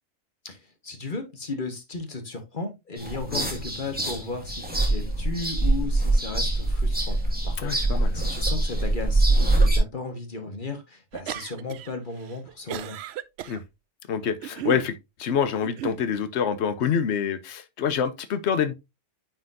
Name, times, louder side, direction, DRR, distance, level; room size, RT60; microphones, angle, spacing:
voice 1, 0.4-7.8 8.1-13.0, left 3 dB, 40° left, 1.4 m, -35 dB
sound 1, 3.0-9.8, right 2 dB, 5° right, 1.7 m, -24 dB
voice 2, 7.6-8.2 13.5-13.6 14.1-18.7, left 7 dB, 55° left, 1.0 m, -26 dB
sound 2, 11.1-11.9 12.2-13.6 14.2-14.9 15.6-16.0, right 12 dB, 65° right, 0.7 m, -34 dB
9.7 x 4.4 x 2.6 m
omnidirectional pair, 1.5 m